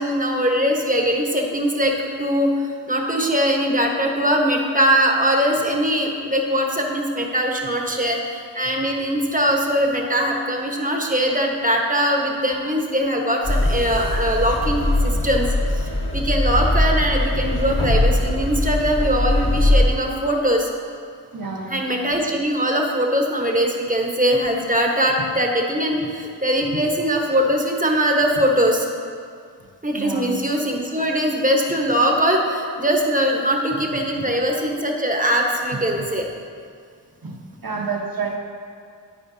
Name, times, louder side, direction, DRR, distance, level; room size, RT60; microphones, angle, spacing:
voice 1, 0.0-20.7 21.7-28.9 29.8-36.3, equal, 20° right, 1 dB, 1.1 m, -21 dB
sound 1, 13.4-19.9, left 1 dB, 30° left, 1.5 m, -20 dB
voice 2, 21.3-21.8 30.0-30.4 34.1-34.3 37.2-37.4 37.6-38.4, right 4 dB, 55° right, 1 dB, 1.2 m, -29 dB
9.7 x 9.6 x 2.7 m, 2.2 s
wide cardioid pair, 55°, 42 cm